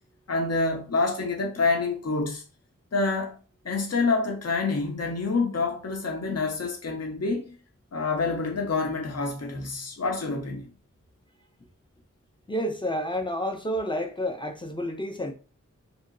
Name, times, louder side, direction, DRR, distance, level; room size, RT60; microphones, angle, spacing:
voice 1, 0.3-2.4 2.9-3.4 3.6-7.5 7.9-10.7, left 3 dB, 55° left, 0.8 m, -27 dB
voice 2, 12.5-15.3, equal, 15° left, 0.6 m, -30 dB
2.9 x 2.8 x 2.5 m
wide cardioid pair, 65°, 30 cm